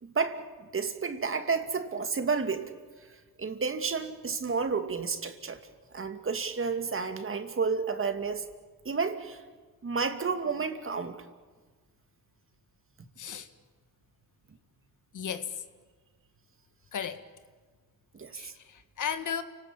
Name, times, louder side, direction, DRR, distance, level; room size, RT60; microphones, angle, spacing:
voice 1, 0.0-2.7 3.4-5.6 5.9-8.4 8.8-9.4 9.8-11.2 18.1-18.5, right 5 dB, 35° right, 2.5 m, -31 dB
voice 2, 13.2-13.5 15.1-15.5 16.9-17.2 18.3-19.4, left 8 dB, 60° left, 1.9 m, -35 dB
30.0 x 18.5 x 8.7 m
cardioid pair, 80°, 35 cm